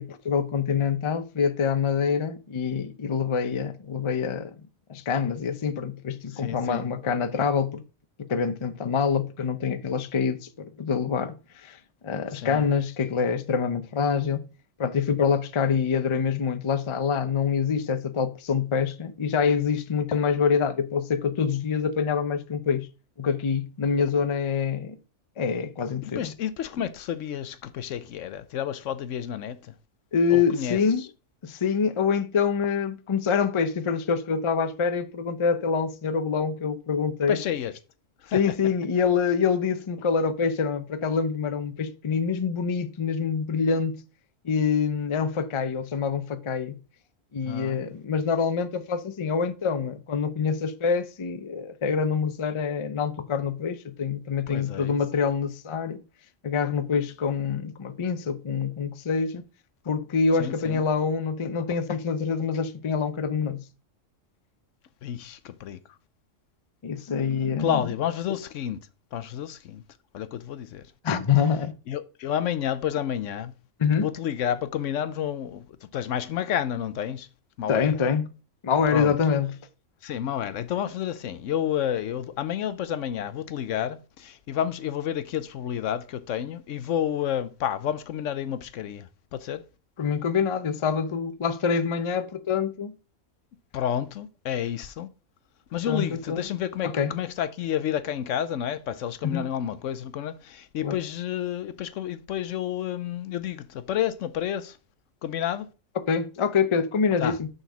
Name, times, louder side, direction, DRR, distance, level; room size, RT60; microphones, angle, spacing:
voice 1, 0.0-4.5 4.9-7.8 8.2-11.8 12.0-14.4 14.8-22.9 23.2-25.0 25.4-26.3 30.1-31.0 31.4-37.4 38.3-44.0 44.4-46.7 47.3-56.0 56.4-59.4 59.9-63.6 66.8-67.8 71.0-71.8 73.8-74.1 77.7-78.3 78.6-79.6 90.0-92.9 95.9-96.4 96.8-97.1 99.2-99.5 100.8-101.0 106.1-107.5, left 6 dB, 35° left, 0.4 m, -26 dB
voice 2, 6.3-6.9 12.3-12.6 26.0-29.7 30.3-31.1 37.3-37.7 38.2-38.4 47.4-47.8 54.5-55.0 60.4-60.8 65.0-65.8 67.6-68.8 69.1-69.8 70.1-70.9 71.9-73.5 73.9-75.7 75.9-77.3 77.6-78.0 78.9-79.2 80.0-89.6 93.7-95.1 95.7-104.8 105.2-105.7 107.2-107.4, left 10 dB, 75° left, 0.9 m, -30 dB
6.5 x 4.0 x 6.0 m
omnidirectional pair, 1.4 m